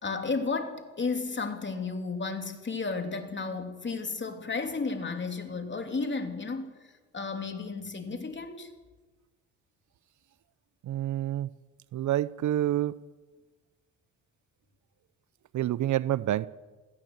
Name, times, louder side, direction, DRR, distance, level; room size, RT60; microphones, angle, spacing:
voice 1, 0.0-6.7 7.1-8.7, left 4 dB, 35° left, 3.3 m, -33 dB
voice 2, 10.8-11.5 11.9-13.0 15.5-16.5, right 13 dB, 60° right, 0.7 m, -28 dB
21.0 x 16.0 x 8.0 m
supercardioid pair, 65°, 34 cm